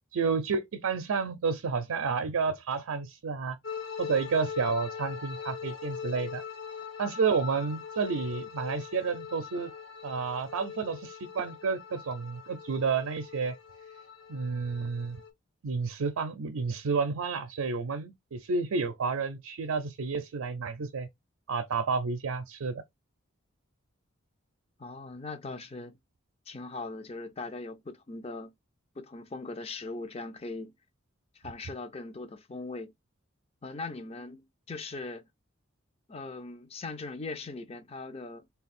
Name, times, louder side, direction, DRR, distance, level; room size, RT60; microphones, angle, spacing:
voice 1, 0.1-3.6 4.0-6.4 7.0-9.7 10.0-13.6 14.3-15.2 15.6-21.1 21.5-22.8, right 5 dB, 90° right, 0.5 m, -30 dB
sound 1, 3.6-15.3, left 6 dB, 70° left, 1.1 m, -42 dB
voice 2, 24.8-25.9 26.5-28.5 29.0-30.7 31.3-32.9 33.6-35.3 36.1-38.4, left 3 dB, 30° left, 0.5 m, -40 dB
3.4 x 2.3 x 4.1 m
head